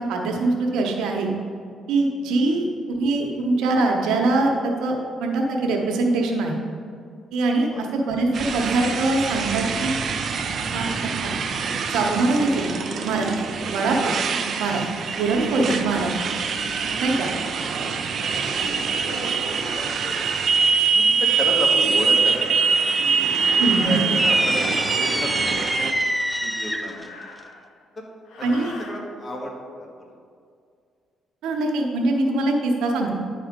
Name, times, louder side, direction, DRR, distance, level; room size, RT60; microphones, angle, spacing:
voice 1, 0.0-1.3 1.9-6.6 7.3-9.9 10.6-10.9 11.2-11.3 11.9-12.7 13.0-13.3 13.7-14.1 14.6-14.9 15.2-16.1 17.0-17.3 23.6-24.0 28.4-28.7 31.4-33.2, right 2 dB, 90° right, 1 dB, 1.0 m, -23 dB
Motorcycle, 8.3-25.9, right 5 dB, 55° right, 0.6 m, -24 dB
voice 2, 18.6-20.3 20.9-22.6 23.0-25.8 26.4-27.1 28.0-28.1 28.4-29.5 29.8-30.1, left 1 dB, 35° left, -1 dB, 1.7 m, -33 dB
sound 1, 20.0-20.5 22.2-23.1 23.6-24.2 26.4-27.8 28.3-29.0, left 3 dB, 80° left, 1.0 m, -43 dB
sound 2, 24.2-27.1, equal, ahead, 0.4 m, -25 dB
10.5 x 4.2 x 5.1 m, 2.2 s
cardioid pair, 90°, 0 cm